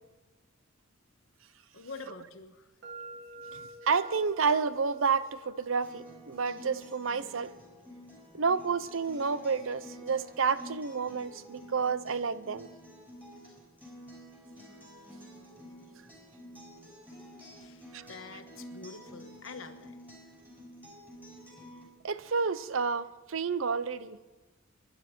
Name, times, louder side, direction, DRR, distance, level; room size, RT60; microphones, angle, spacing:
voice 1, 1.7-2.7 17.6-20.0, left 4 dB, 85° left, 1.3 m, -46 dB
sound 1, 2.8-10.7, right 2 dB, 60° right, 1.8 m, -52 dB
voice 2, 3.9-7.5 8.3-12.7 17.9-18.0 22.0-24.2, right 5 dB, 75° right, 0.7 m, -30 dB
Acoustic guitar, 5.8-21.8, equal, 10° right, 5.9 m, -50 dB
25.0 x 11.5 x 4.5 m
head